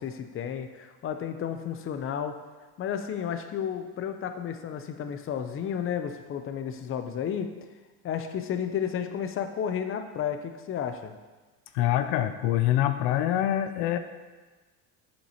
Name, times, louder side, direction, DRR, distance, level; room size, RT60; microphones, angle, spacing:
voice 1, 0.0-2.4 2.8-7.5 8.0-11.1, left 8 dB, 35° left, 7 dB, 0.6 m, -32 dB
voice 2, 11.7-14.0, left 12 dB, 75° left, 10 dB, 0.6 m, -25 dB
7.5 x 7.2 x 2.9 m, 1.3 s
supercardioid pair, 100°, 40 cm